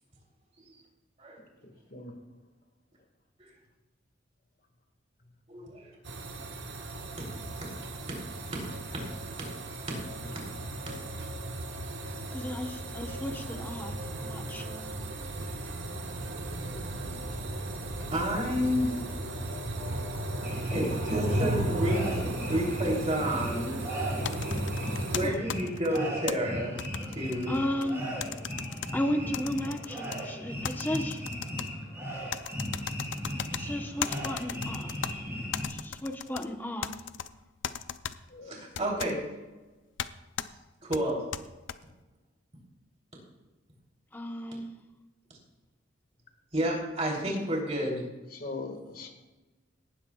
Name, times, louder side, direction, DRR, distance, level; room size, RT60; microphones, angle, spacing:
voice 1, 5.5-5.9 18.1-18.9 20.6-23.8 25.1-26.8 27.1-27.5 38.5-39.2 40.8-41.2 46.5-48.1, equal, 35° right, -2 dB, 3.3 m, -30 dB
sound 1, 6.0-25.3, right 1 dB, 65° right, 1.4 m, -35 dB
voice 2, 12.3-14.9 25.2-25.4 27.5-28.1 28.9-31.2 33.5-34.9 35.7-36.9 44.1-44.7, left 1 dB, 10° left, 4 dB, 1.0 m, -34 dB
voice 3, 16.7-17.2 38.3-38.6 48.3-49.1, left 3 dB, 45° left, 4 dB, 1.8 m, -41 dB
sound 2, 20.4-35.6, equal, 15° right, 3.7 m, -37 dB
sound 3, 24.2-26.3 26.8-27.9 28.2-28.9 29.3-30.2 30.6-31.7 32.3-33.6 34.0-35.1 35.5-36.5 36.8-37.3 37.6-38.1 38.7-39.1 40.0-40.1 40.4-40.5 40.9-41.8, left 8 dB, 75° left, 0.5 m, -36 dB
17.5 x 12.5 x 2.4 m, 1.1 s
head